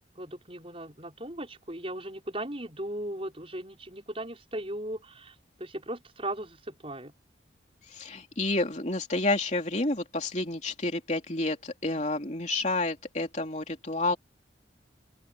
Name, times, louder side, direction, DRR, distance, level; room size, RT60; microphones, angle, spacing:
voice 1, 0.2-7.1, right 1 dB, 30° right, 5.9 m, -37 dB
voice 2, 7.9-14.2, left 2 dB, 40° left, 3.1 m, -29 dB
open air
head